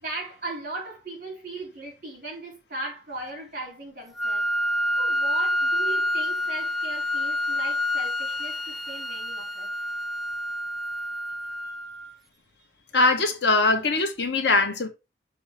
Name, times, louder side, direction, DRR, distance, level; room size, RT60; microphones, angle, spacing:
voice 1, 0.0-4.5 5.0-9.7 11.6-11.7 12.7-12.8, right 2 dB, 50° right, 3.4 m, -38 dB
Wind instrument woodwind instrument, 4.2-12.1, left 1 dB, ahead, 0.4 m, -28 dB
voice 2, 12.9-14.9, left 3 dB, 80° left, 1.3 m, -21 dB
6.4 x 3.0 x 5.7 m
head